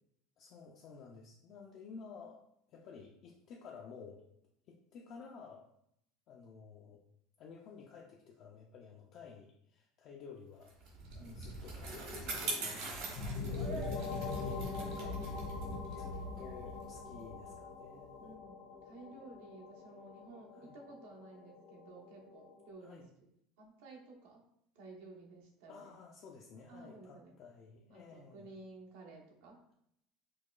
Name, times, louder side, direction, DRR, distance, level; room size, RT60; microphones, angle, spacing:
voice 1, 0.4-2.4 2.7-4.2 4.7-5.7 6.3-7.0 7.4-10.7 11.1-14.3 14.8-15.2 15.9-18.3 20.5-20.8 22.8-23.1 25.7-28.5, left 5 dB, 40° left, -2 dB, 0.4 m, -53 dB
Bicycle, 10.7-17.4, right 2 dB, 60° right, 1.0 m, -43 dB
voice 2, 11.2-11.6 14.0-14.7 18.2-23.3 23.6-24.4 24.7-25.9 26.7-27.3 27.9-29.6, right 2 dB, 85° right, -1 dB, 0.9 m, -54 dB
sound 1, 13.2-22.7, left 4 dB, 55° left, 0.8 m, -43 dB
4.6 x 2.2 x 2.3 m, 0.73 s
cardioid pair, 170°, 0 cm